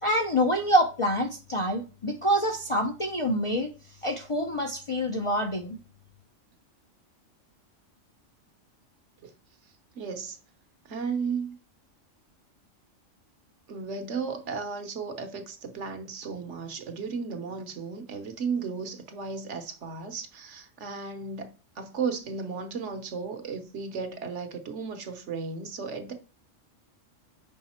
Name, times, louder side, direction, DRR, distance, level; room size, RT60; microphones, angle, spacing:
voice 1, 0.0-3.7 4.0-5.8, equal, 35° left, 0.5 m, -26 dB
voice 2, 9.9-10.4 10.8-11.6 13.7-26.1, right 5 dB, 65° right, 1.2 m, -34 dB
5.6 x 4.9 x 4.3 m
omnidirectional pair, 1.3 m